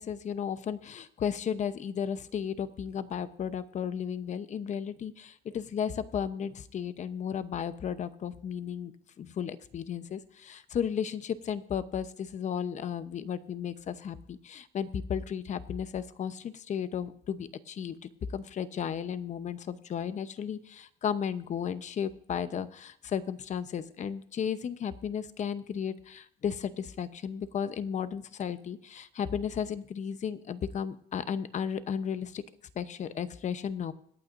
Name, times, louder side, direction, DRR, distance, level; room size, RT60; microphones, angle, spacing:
voice 1, 0.0-8.9 9.2-32.4 32.8-33.9, left 8 dB, 45° left, 12 dB, 0.8 m, -34 dB
26.0 x 9.0 x 2.6 m, 0.68 s
cardioid pair, 110°, 17 cm